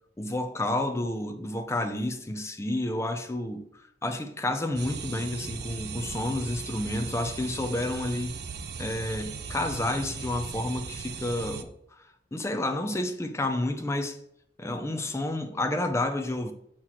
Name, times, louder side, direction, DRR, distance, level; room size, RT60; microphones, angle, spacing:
voice 1, 0.2-3.6 4.0-8.4 8.8-11.7 12.3-14.2 14.6-16.5, left 1 dB, 15° left, 0.5 m, -30 dB
sound 1, 4.8-11.6, right 5 dB, 55° right, 0.5 m, -38 dB
6.3 x 5.7 x 3.0 m
head